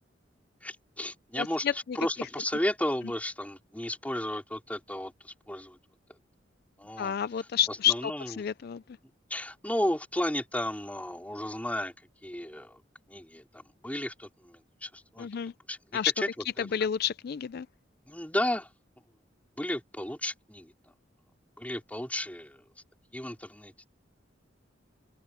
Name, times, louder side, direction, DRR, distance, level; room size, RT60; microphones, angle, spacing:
voice 1, 0.6-5.8 6.8-7.1 7.7-8.4 9.3-11.9 12.2-12.8 13.1-15.3 15.7-15.8 16.2-16.3 16.6-16.7 18.1-18.7 19.6-20.7 21.6-22.6 23.1-23.7, left 1 dB, 10° left, 4.2 m, -33 dB
voice 2, 1.4-1.7 7.0-8.8 15.2-15.5 15.9-16.1 16.6-17.7, left 9 dB, 60° left, 0.4 m, -29 dB
open air
head